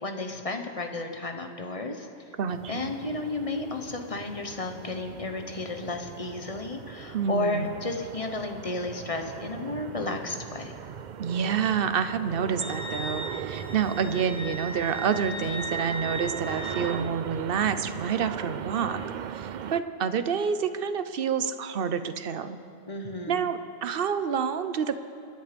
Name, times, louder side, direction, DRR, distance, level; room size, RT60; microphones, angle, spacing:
voice 1, 0.0-2.1 2.7-10.7 22.9-23.5, left 2 dB, 30° left, 5 dB, 1.1 m, -33 dB
voice 2, 2.4-2.9 7.1-7.7 11.2-19.0 19.3-22.6 23.3-25.0, right 7 dB, 50° right, 11 dB, 0.8 m, -28 dB
sound 1, 2.5-19.8, right 8 dB, 75° right, 0.4 m, -39 dB
Wind instrument woodwind instrument, 12.6-17.1, right 1 dB, 5° left, 0.4 m, -37 dB
26.5 x 10.5 x 5.2 m, 2.7 s
omnidirectional pair, 1.3 m